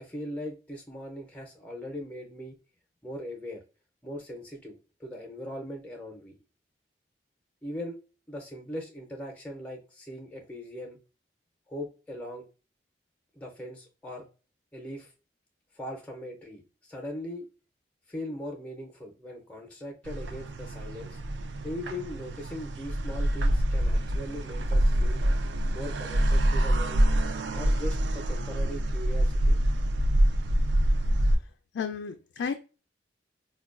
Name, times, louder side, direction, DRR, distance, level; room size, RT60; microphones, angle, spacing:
voice 1, 0.0-2.6 3.0-3.6 4.0-6.4 7.6-8.0 8.3-11.0 11.7-12.4 13.3-14.3 14.7-15.1 15.7-17.5 18.1-21.2 21.6-25.2 25.7-27.0 27.5-29.6, left 1 dB, 5° left, 1 dB, 0.5 m, -40 dB
sound 1, 20.0-31.4, right 1 dB, 85° right, 0.4 m, -26 dB
voice 2, 31.3-32.5, left 6 dB, 90° left, 6 dB, 0.3 m, -34 dB
4.6 x 2.2 x 2.3 m, 0.34 s
head